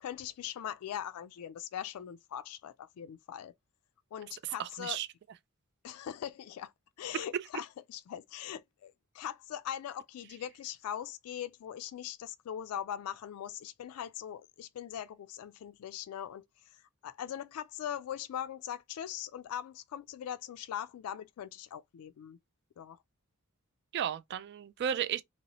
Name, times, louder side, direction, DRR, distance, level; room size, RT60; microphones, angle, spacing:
voice 1, 0.0-3.5 4.1-5.0 5.8-6.7 7.0-16.4 16.7-22.4 22.8-23.0, left 10 dB, 80° left, 0.3 m, -41 dB
voice 2, 4.6-5.1 7.1-7.4 23.9-25.2, right 9 dB, 50° right, 0.3 m, -34 dB
3.0 x 2.8 x 2.9 m
head